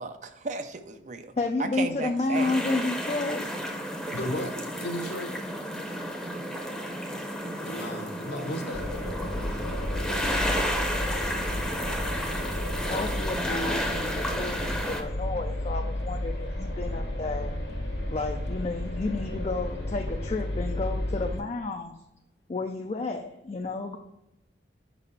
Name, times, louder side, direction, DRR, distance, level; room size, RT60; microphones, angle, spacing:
voice 1, 0.0-1.3 1.6-2.5, right 3 dB, 40° right, 8 dB, 0.5 m, -34 dB
voice 2, 1.4-3.5 12.8-17.5 18.1-21.9 22.5-24.0, left 3 dB, 35° left, 3 dB, 0.4 m, -31 dB
sound 1, 2.3-15.0, equal, 5° left, 0.7 m, -32 dB
voice 3, 4.1-5.3 7.6-8.8, equal, 65° left, 4 dB, 0.9 m, -34 dB
sound 2, 8.7-21.4, left 1 dB, 80° left, 1.5 m, -32 dB
5.4 x 4.1 x 5.4 m, 0.89 s
head